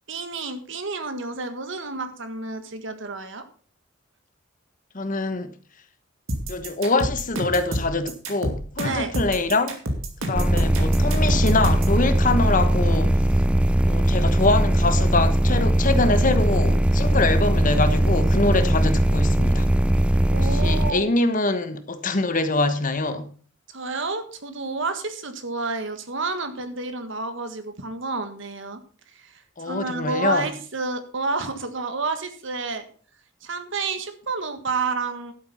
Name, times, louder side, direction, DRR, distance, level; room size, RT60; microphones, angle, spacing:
voice 1, 0.1-3.5 8.8-9.1 20.3-21.0 23.7-28.8 29.1-32.8 33.4-35.3, right 3 dB, 65° right, 1.7 m, -30 dB
voice 2, 4.9-5.5 6.5-9.8 10.3-13.1 13.9-19.7 20.5-23.3 29.6-30.5, left 2 dB, 40° left, 1.2 m, -24 dB
sound 1, 6.3-12.0, right 1 dB, 80° right, 2.6 m, -28 dB
sound 2, 10.4-20.9, right 1 dB, 5° right, 0.4 m, -20 dB
12.0 x 8.1 x 5.5 m
head